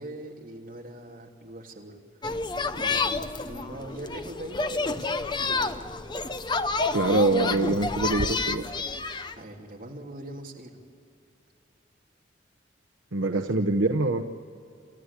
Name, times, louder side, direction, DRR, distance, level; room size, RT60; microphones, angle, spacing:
voice 1, 0.0-2.0 2.7-5.7 9.4-10.8 13.3-13.4, right 1 dB, 45° right, -1 dB, 3.0 m, -42 dB
sound 1, 2.2-9.4, left 3 dB, 25° left, 0.7 m, -29 dB
voice 2, 6.9-8.6 13.1-14.2, right 2 dB, 75° right, 4 dB, 0.9 m, -24 dB
29.0 x 14.5 x 8.4 m, 2.5 s
head